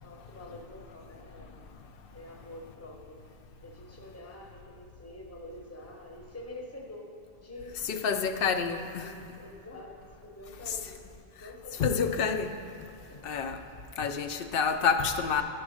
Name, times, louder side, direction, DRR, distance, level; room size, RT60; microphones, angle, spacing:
voice 1, 0.0-1.7 2.1-7.1 7.4-8.0 9.0-11.1 11.4-12.3 12.9-13.4, left 1 dB, 15° left, 0 dB, 0.9 m, -47 dB
voice 2, 7.8-9.1 10.7-10.8 11.7-12.5 13.2-13.6 14.0-15.4, left 6 dB, 65° left, 7 dB, 0.7 m, -28 dB
10.0 x 4.6 x 6.2 m, 2.5 s
omnidirectional pair, 1.1 m